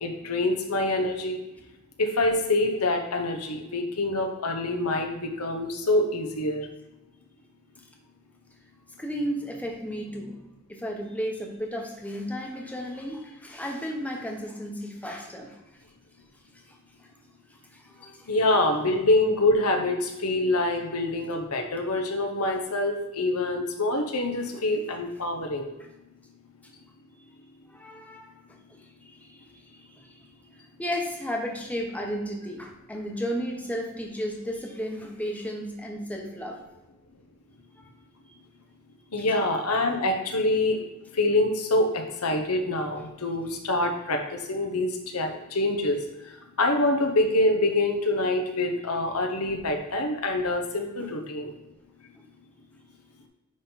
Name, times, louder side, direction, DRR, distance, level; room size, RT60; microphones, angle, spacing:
voice 1, 0.0-1.4 2.0-6.6 18.3-25.7 39.1-40.8 41.1-46.0 46.6-51.5, left 2 dB, 85° left, 4 dB, 1.1 m, -25 dB
voice 2, 9.0-10.4 10.7-15.6 17.7-18.3 24.4-24.6 27.7-28.3 28.8-30.2 30.8-36.6 39.3-39.4 51.0-51.1, equal, 5° left, 1 dB, 1.0 m, -34 dB
9.9 x 3.9 x 4.1 m, 1.0 s
head